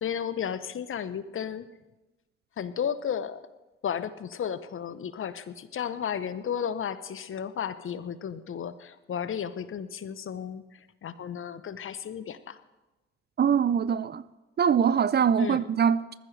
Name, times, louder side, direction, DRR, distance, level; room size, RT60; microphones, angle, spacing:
voice 1, 0.0-1.7 2.6-3.4 3.8-12.6 15.4-15.6, left 8 dB, 40° left, 0.9 m, -33 dB
voice 2, 13.4-14.2 14.6-16.2, right 7 dB, 35° right, 0.5 m, -23 dB
20.0 x 14.5 x 3.3 m
hypercardioid pair, 50°, 30 cm